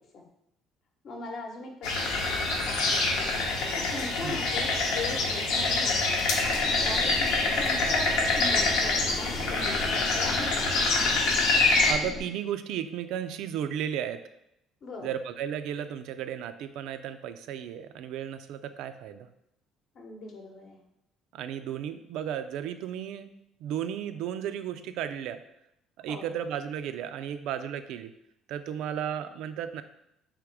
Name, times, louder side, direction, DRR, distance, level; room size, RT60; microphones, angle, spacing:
voice 1, 1.0-6.2 6.8-8.1 8.4-10.7 14.8-15.1 19.9-20.8 26.1-26.3, left 3 dB, 50° left, 2 dB, 0.8 m, -40 dB
sound 1, 1.8-11.9, left 3 dB, 90° left, 0.8 m, -26 dB
sound 2, 6.4-12.2, left 3 dB, 30° left, 0.5 m, -39 dB
voice 2, 11.9-14.2 15.0-19.3 21.3-23.3 23.6-25.4 26.0-28.1 28.5-29.8, right 9 dB, 75° right, 10 dB, 0.3 m, -34 dB
3.6 x 2.9 x 4.7 m, 0.80 s
cardioid pair, 130°, 0 cm